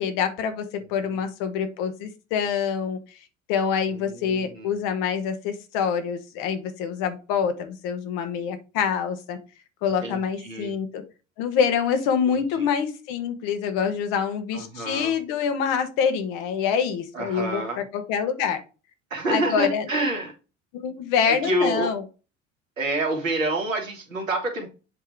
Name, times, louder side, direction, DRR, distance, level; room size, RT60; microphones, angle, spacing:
voice 1, 0.0-3.2 3.5-9.4 9.8-11.0 11.4-18.6 19.3-19.9 20.7-22.0, left 7 dB, 55° left, 8 dB, 1.5 m, -26 dB
voice 2, 3.9-4.7 10.0-10.8 12.3-12.7 14.5-15.1 17.1-17.8 19.1-20.3 21.3-21.9 22.8-24.7, right 2 dB, 80° right, 2 dB, 2.3 m, -28 dB
7.6 x 3.7 x 4.6 m, 0.32 s
figure-of-eight pair, 65°, 39 cm